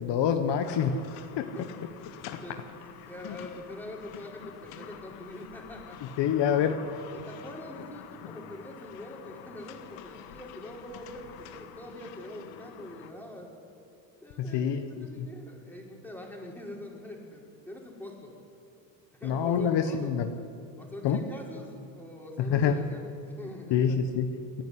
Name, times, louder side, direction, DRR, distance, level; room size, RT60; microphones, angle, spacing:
voice 1, 0.0-1.1 1.4-1.5 2.3-2.4 3.2-3.4 6.2-6.8 14.4-15.3 19.2-20.3 21.0-21.2 22.4-22.8 23.7-24.6, left 7 dB, 55° left, 7 dB, 1.5 m, -27 dB
sound 1, 0.6-13.1, left 9 dB, 85° left, 2.0 m, -47 dB
voice 2, 1.3-1.7 2.0-2.1 2.4-6.0 7.1-13.6 14.2-18.3 19.2-20.1 20.8-21.7 21.9-24.0, left 1 dB, 5° left, -1 dB, 4.9 m, -44 dB
29.0 x 10.5 x 9.8 m, 2.6 s
supercardioid pair, 110°, 50 cm